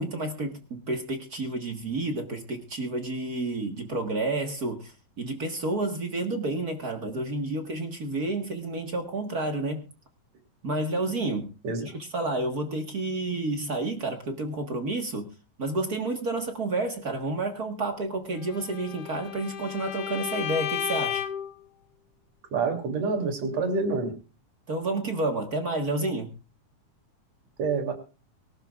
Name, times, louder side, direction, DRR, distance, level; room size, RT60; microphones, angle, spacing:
voice 1, 0.0-9.9 10.6-11.5 11.8-15.3 15.6-21.2 24.7-26.3, right 2 dB, 40° right, 4 dB, 1.5 m, -30 dB
Bowed string instrument, 18.5-21.5, left 11 dB, 70° left, 1.5 m, -33 dB
voice 2, 22.5-24.1 27.6-27.9, right 4 dB, 65° right, 4 dB, 4.0 m, -27 dB
24.0 x 12.0 x 2.4 m, 0.33 s
omnidirectional pair, 3.4 m